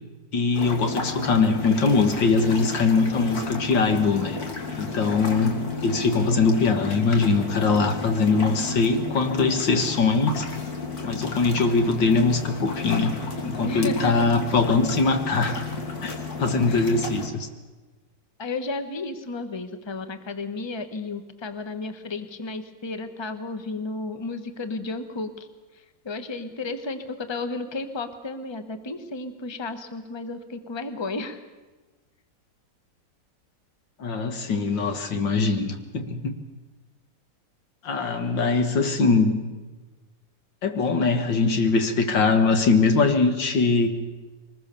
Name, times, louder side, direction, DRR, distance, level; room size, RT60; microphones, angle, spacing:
voice 1, 0.3-4.4 4.8-10.4 11.0-13.1 13.4-15.6 16.0-16.1 16.4-17.5 34.0-36.4 37.8-39.4 40.6-43.9, left 4 dB, 85° left, 6 dB, 2.5 m, -22 dB
sound 1, 0.5-17.3, left 4 dB, 55° left, 2.7 m, -33 dB
voice 2, 13.6-14.3 16.7-16.9 18.4-25.5 26.0-31.4, left 3 dB, 15° left, 9 dB, 1.1 m, -33 dB
23.0 x 20.0 x 6.9 m, 1.2 s
omnidirectional pair, 1.9 m